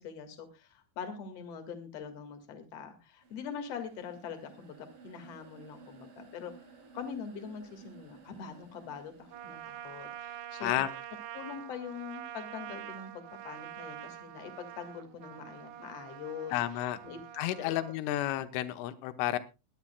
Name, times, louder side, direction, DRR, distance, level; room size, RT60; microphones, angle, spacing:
voice 1, 0.0-6.5 6.9-10.8 11.3-17.2 17.6-17.8, left 7 dB, 55° left, 7 dB, 1.8 m, -43 dB
sound 1, 3.2-11.2, right 4 dB, 55° right, 1.6 m, -56 dB
Trumpet, 9.3-18.0, right 12 dB, 75° right, 2.8 m, -45 dB
voice 2, 16.5-17.0 17.3-19.4, left 14 dB, 80° left, 11 dB, 3.4 m, -31 dB
22.0 x 11.5 x 2.2 m, 0.27 s
omnidirectional pair, 5.7 m